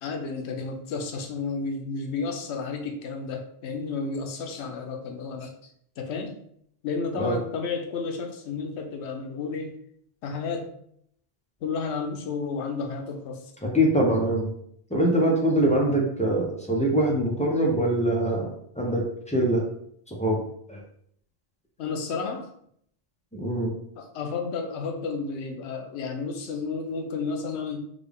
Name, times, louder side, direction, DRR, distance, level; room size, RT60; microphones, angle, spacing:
voice 1, 0.0-5.5 6.0-6.4 6.8-9.7 10.2-10.7 11.6-13.4 21.8-22.5 24.0-27.8, left 4 dB, 85° left, 4 dB, 0.9 m, -32 dB
voice 2, 13.6-14.5 14.9-18.5 18.8-19.6 20.1-20.4 20.7-20.8 23.3-23.7, right 1 dB, 10° left, -2 dB, 0.4 m, -23 dB
3.7 x 2.3 x 3.4 m, 0.68 s
omnidirectional pair, 1.1 m